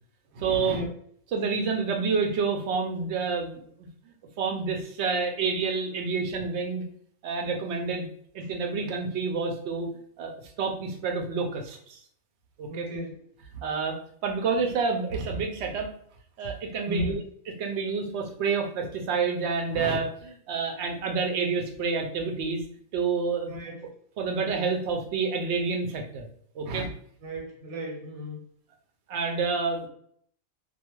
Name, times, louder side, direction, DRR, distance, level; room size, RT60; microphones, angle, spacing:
voice 1, 0.3-0.8 1.3-3.6 4.4-6.8 7.2-8.1 8.3-9.9 10.2-10.3 10.6-12.0 12.6-12.9 13.6-14.0 14.2-15.9 16.4-17.2 17.6-22.6 22.9-23.5 24.2-26.3 26.6-26.9 29.1-29.9, right 4 dB, 65° right, 2 dB, 0.8 m, -28 dB
voice 2, 12.7-13.2 16.8-17.2 23.5-23.8 27.2-28.4, equal, 85° right, -1 dB, 1.2 m, -34 dB
2.4 x 2.3 x 3.0 m, 0.63 s
omnidirectional pair, 1.4 m